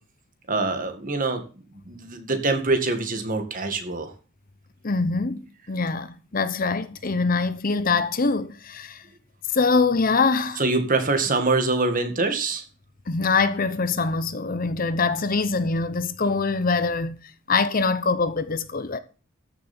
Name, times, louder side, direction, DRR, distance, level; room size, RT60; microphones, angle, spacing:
voice 1, 0.5-1.4 1.9-4.1 10.6-12.6, right 3 dB, 40° right, 2.0 m, -24 dB
voice 2, 4.8-5.4 5.7-9.0 9.5-10.6 13.1-17.2 17.5-19.0, left 4 dB, 45° left, 0.8 m, -23 dB
14.0 x 6.8 x 4.4 m
head